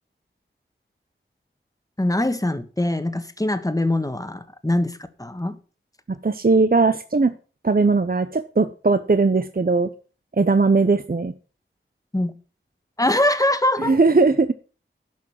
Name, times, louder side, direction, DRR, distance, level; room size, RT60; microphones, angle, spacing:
voice 1, 2.0-5.6 12.1-12.3 13.0-14.0, left 1 dB, 15° left, 1.4 m, -23 dB
voice 2, 6.1-7.3 7.6-9.9 10.4-11.3 13.8-14.5, right 3 dB, 45° right, 0.7 m, -19 dB
11.5 x 6.2 x 7.2 m
wide cardioid pair, 60°, 21 cm